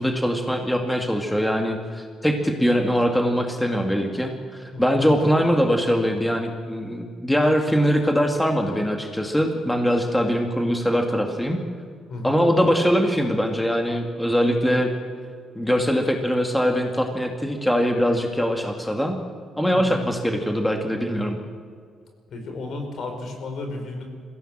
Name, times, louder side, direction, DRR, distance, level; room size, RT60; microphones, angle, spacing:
voice 1, 0.0-11.6 12.2-14.9 15.6-19.2 19.6-21.4, equal, 5° left, 3 dB, 2.3 m, -22 dB
voice 2, 12.1-12.4 19.7-20.1 22.3-24.1, left 2 dB, 65° left, 4 dB, 5.0 m, -33 dB
21.5 x 16.0 x 7.6 m, 2.1 s
cardioid pair, 90°, 0 cm